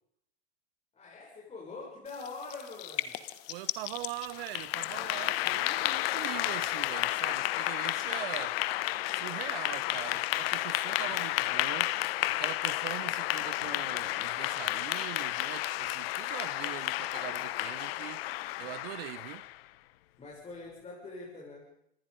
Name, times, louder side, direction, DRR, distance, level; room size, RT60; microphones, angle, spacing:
voice 1, 0.9-3.2 20.2-21.6, left 3 dB, 20° left, 7.5 m, -44 dB
sound 1, 2.1-7.3, left 16 dB, 45° left, 1.6 m, -42 dB
voice 2, 3.5-8.6 9.1-11.9 12.3-19.5, right 19 dB, 60° right, 1.1 m, -42 dB
Clapping / Applause, 4.3-19.6, left 17 dB, 60° left, 1.0 m, -32 dB
26.5 x 19.5 x 5.4 m
hypercardioid pair, 115°, 33 cm